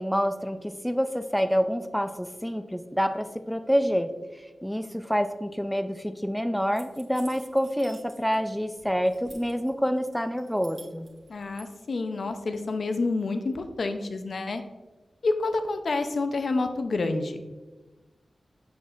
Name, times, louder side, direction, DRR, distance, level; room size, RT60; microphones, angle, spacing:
voice 1, 0.0-4.1 4.6-11.1, equal, 5° left, 9 dB, 0.3 m, -27 dB
sound 1, 6.7-8.5 8.8-9.7 10.1-11.7, right 2 dB, 50° right, 1.2 m, -50 dB
voice 2, 11.3-14.6 15.2-17.5, left 3 dB, 65° left, 8 dB, 0.5 m, -28 dB
7.0 x 6.1 x 2.5 m, 1.2 s
wide cardioid pair, 95°, 0 cm